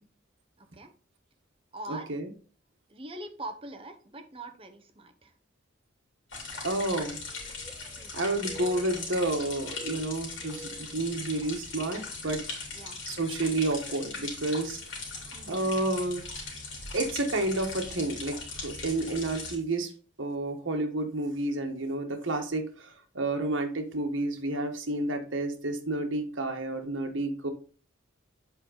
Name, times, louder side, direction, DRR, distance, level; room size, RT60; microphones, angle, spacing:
voice 1, 0.6-0.9 1.7-2.1 2.9-5.3 8.0-8.3 12.7-13.0 15.3-15.7, right 1 dB, 30° right, 6 dB, 0.9 m, -43 dB
voice 2, 1.9-2.3 6.6-7.2 8.1-12.4 13.1-14.8 15.5-16.2 16.9-19.9 20.2-27.5, right 2 dB, 85° right, 4 dB, 1.3 m, -30 dB
sound 1, 6.3-19.5, left 3 dB, 75° left, 2.7 m, -39 dB
sound 2, 6.4-6.5 6.8-8.1 8.4-9.3 9.6-11.7 12.1-12.3 12.9-13.2 14.3-14.4 14.7-14.8, right 3 dB, 5° right, 0.6 m, -49 dB
7.4 x 4.6 x 3.9 m, 0.39 s
head